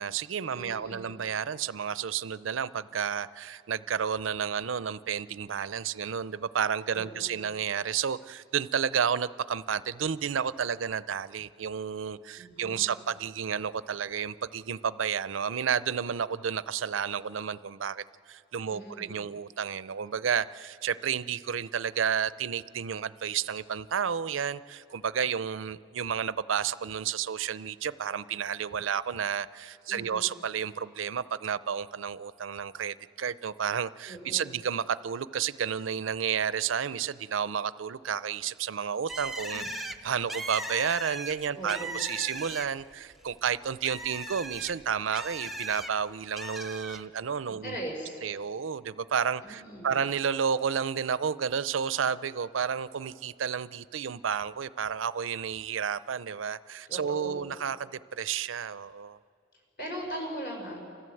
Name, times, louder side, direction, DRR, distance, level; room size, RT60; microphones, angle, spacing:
voice 1, 0.0-39.6 40.0-47.8 48.2-57.8 58.1-59.2, right 7 dB, 85° right, 16 dB, 0.5 m, -31 dB
voice 2, 0.5-1.2 6.9-7.4 12.4-13.0 18.7-19.2 29.9-30.3 34.1-34.5 39.5-39.7 41.5-42.1 47.4-48.2 49.4-49.9 56.9-57.5 59.8-60.9, right 1 dB, 50° left, -1 dB, 5.6 m, -40 dB
Bird, 39.1-42.9 43.3-45.9 46.4-47.0, right 1 dB, ahead, 0.7 m, -38 dB
29.0 x 14.5 x 7.8 m, 2.4 s
head